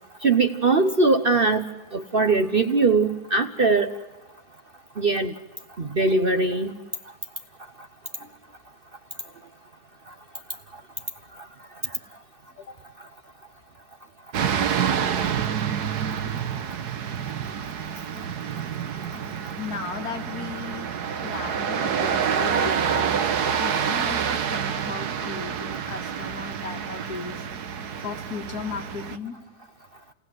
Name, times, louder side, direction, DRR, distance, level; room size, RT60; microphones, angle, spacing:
voice 1, 0.2-1.6 1.9-4.0 5.0-5.3 5.8-6.7, right 3 dB, 40° right, 7 dB, 0.9 m, -21 dB
sound 1, 14.3-29.2, right 7 dB, 70° right, 1.5 m, -27 dB
voice 2, 19.6-20.9 21.2-27.4 28.0-29.4, left 5 dB, 65° left, 5 dB, 2.2 m, -36 dB
28.0 x 19.0 x 7.7 m, 1.1 s
omnidirectional pair, 1.8 m